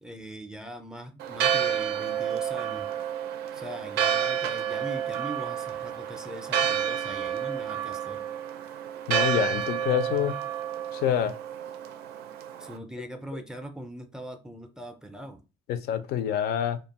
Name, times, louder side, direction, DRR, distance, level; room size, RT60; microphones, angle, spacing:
voice 1, 0.0-2.9 3.5-8.2 12.6-15.4, equal, 5° right, 0.4 m, -41 dB
Church bell, 1.2-12.8, right 9 dB, 75° right, 0.4 m, -30 dB
voice 2, 9.1-10.3 10.9-11.4 15.7-16.8, left 10 dB, 70° left, 0.4 m, -27 dB
2.5 x 2.2 x 2.8 m
cardioid pair, 110°, 17 cm